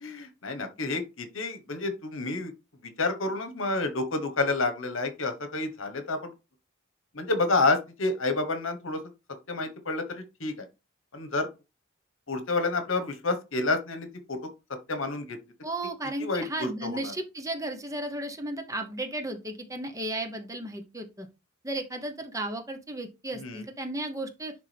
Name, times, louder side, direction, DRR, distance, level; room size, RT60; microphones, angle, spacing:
voice 1, 0.0-2.5 2.8-6.3 7.1-9.0 9.5-10.7 11.1-11.5 12.3-14.4 14.9-15.4 16.2-17.1 23.4-23.6, left 3 dB, 70° left, 1.3 m, -29 dB
voice 2, 15.6-21.3 21.6-24.5, right 1 dB, 15° right, 1.0 m, -34 dB
10.5 x 3.6 x 3.4 m
head